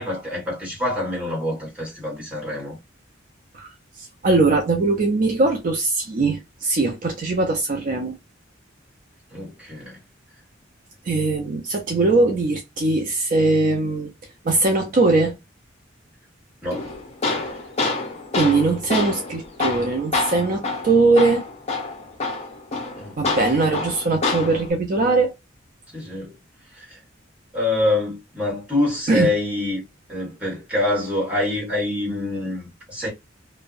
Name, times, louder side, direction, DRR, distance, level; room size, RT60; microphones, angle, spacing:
voice 1, 0.0-2.8 9.3-10.0 16.6-16.9 17.3-17.6 22.9-23.8 25.9-26.3 26.6-27.0 27.5-29.8 30.1-33.1, left 2 dB, 5° right, 1.3 m, -26 dB
voice 2, 4.0-8.2 11.1-14.1 14.4-15.4 18.3-21.4 23.2-25.3 29.1-29.3, right 3 dB, 45° right, 0.4 m, -20 dB
Tools, 16.7-24.7, left 3 dB, 35° left, 0.5 m, -27 dB
2.5 x 2.0 x 2.3 m
head